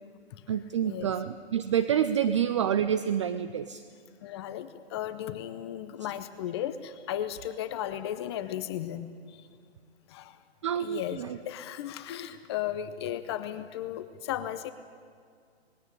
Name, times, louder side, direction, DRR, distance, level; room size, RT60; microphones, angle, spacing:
voice 1, 0.5-3.8 10.6-11.4, right 9 dB, 30° right, 12 dB, 0.4 m, -28 dB
voice 2, 4.2-9.5 10.1-10.4 10.8-14.7, left 11 dB, 25° left, 12 dB, 0.7 m, -35 dB
20.0 x 16.5 x 9.8 m, 2.1 s
hypercardioid pair, 145°, 32 cm